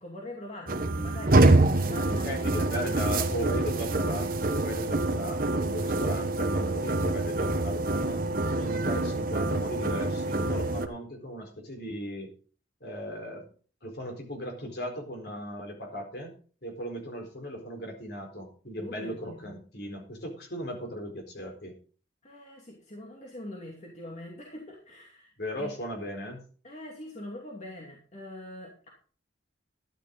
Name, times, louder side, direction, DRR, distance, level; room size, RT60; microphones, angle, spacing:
voice 1, 0.0-3.0 18.8-19.5 22.2-25.7 26.6-28.9, left 1 dB, 35° left, -1 dB, 2.6 m, -43 dB
sound 1, 0.7-10.9, right 2 dB, 50° right, 1.2 m, -26 dB
voice 2, 2.2-8.2 8.6-12.3 12.8-13.5 13.8-16.3 16.6-21.8 25.4-26.4, equal, 55° left, 3 dB, 4.3 m, -37 dB
13.0 x 11.0 x 3.9 m, 0.40 s
head